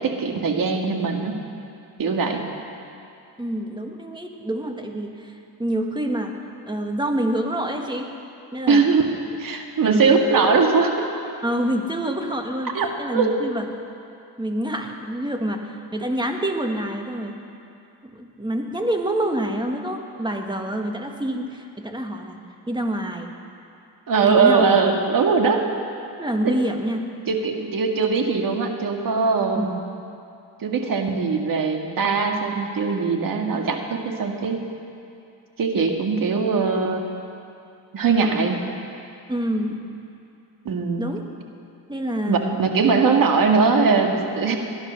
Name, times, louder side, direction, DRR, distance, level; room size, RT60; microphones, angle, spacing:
voice 1, 0.0-1.4 2.0-2.4 8.7-9.1 9.4-11.1 12.7-13.3 24.1-25.6 26.4-26.5 27.3-29.8 30.6-34.6 35.6-37.1 37.9-38.6 40.7-41.0 42.3-44.6, right 4 dB, 55° right, 3 dB, 2.1 m, -21 dB
voice 2, 3.4-6.3 6.7-8.1 8.5-8.8 9.8-10.1 11.4-13.7 14.4-17.4 18.1-22.4 22.7-23.3 24.2-24.7 26.2-27.1 29.6-29.7 39.3-39.8 41.0-41.2 41.9-42.6, right 1 dB, 10° right, 3 dB, 1.8 m, -27 dB
20.0 x 11.0 x 6.5 m, 2.7 s
cardioid pair, 85°, 40 cm